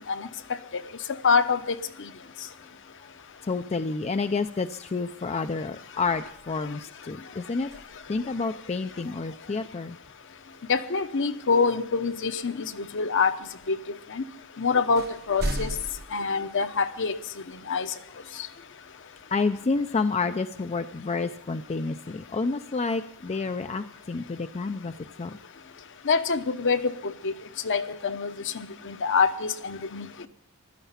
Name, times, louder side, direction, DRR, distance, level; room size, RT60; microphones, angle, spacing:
voice 1, 1.2-1.6 2.0-2.1 10.7-13.4 13.7-13.8 14.1-14.2 14.6-15.7 16.1-17.1 17.7-17.9 26.1-27.3 27.6-30.1, left 5 dB, 60° left, 9 dB, 0.9 m, -25 dB
voice 2, 3.4-7.7 8.1-10.0 19.3-24.9 25.2-25.4, left 4 dB, 30° left, 9 dB, 0.5 m, -29 dB
sound 1, 6.0-6.8 7.6-8.5 12.1-12.2 14.2-14.3 14.9-16.1, right 1 dB, 45° right, 0.9 m, -35 dB
15.5 x 12.0 x 5.7 m, 0.72 s
head